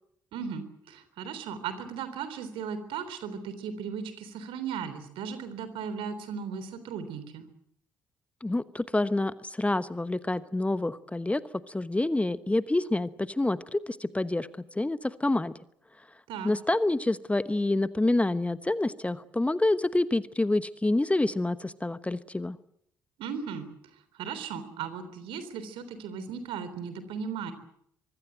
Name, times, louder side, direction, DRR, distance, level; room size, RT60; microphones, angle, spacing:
voice 1, 0.3-7.5 16.3-16.5 23.2-23.7 23.9-27.5, right 6 dB, 60° right, 12 dB, 3.5 m, -37 dB
voice 2, 8.4-11.4 11.7-15.5 16.4-22.6, left 2 dB, 15° left, 15 dB, 1.1 m, -27 dB
25.0 x 21.0 x 7.9 m, 0.73 s
figure-of-eight pair, 45°, 10 cm